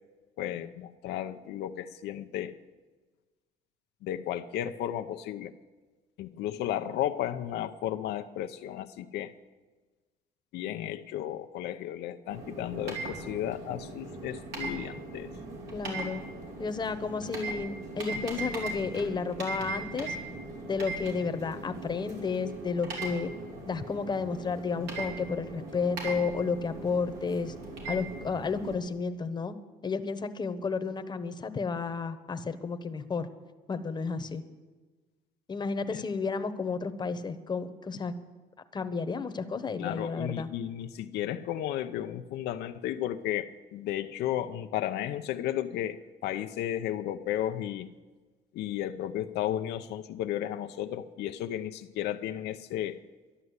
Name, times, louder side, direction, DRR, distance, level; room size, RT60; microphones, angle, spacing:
voice 1, 0.4-2.6 4.0-5.5 6.2-9.3 10.5-15.3 35.9-36.0 39.8-46.0 46.2-47.9 48.5-53.0, left 11 dB, 80° left, 7 dB, 0.6 m, -34 dB
sound 1, 12.3-28.7, right 3 dB, 80° right, 3.8 m, -39 dB
voice 2, 15.7-16.3 16.6-20.2 20.7-23.3 23.7-27.5 27.9-29.5 29.8-33.3 33.7-34.4 35.5-38.1 38.7-40.5, left 5 dB, 25° left, 10 dB, 1.0 m, -32 dB
11.0 x 11.0 x 8.1 m, 1.3 s
cardioid pair, 110°, 17 cm